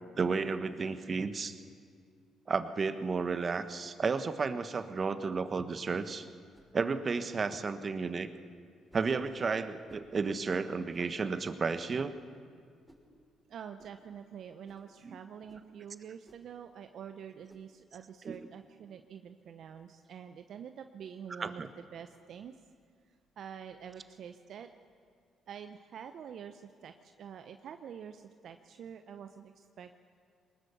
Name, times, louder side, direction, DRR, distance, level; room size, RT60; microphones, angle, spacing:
voice 1, 0.2-1.5 2.5-6.3 6.7-8.3 8.9-12.1 15.0-15.2 18.2-18.4 21.4-21.7, right 4 dB, 40° right, 10 dB, 1.3 m, -32 dB
sound 1, 6.5-6.7 7.9-8.1 8.9-9.1 9.9-10.1 10.9-11.1 11.9-12.1 12.8-13.1 13.8-14.0 14.6-14.9 15.5-15.7 16.2-16.5 17.5-17.7 18.3-18.5, right 1 dB, 5° right, 5.9 m, -61 dB
voice 2, 13.5-22.6 23.1-24.7 25.5-29.9, right 8 dB, 60° right, 8 dB, 0.8 m, -47 dB
23.0 x 20.0 x 7.0 m, 2.2 s
hypercardioid pair, 50°, 0 cm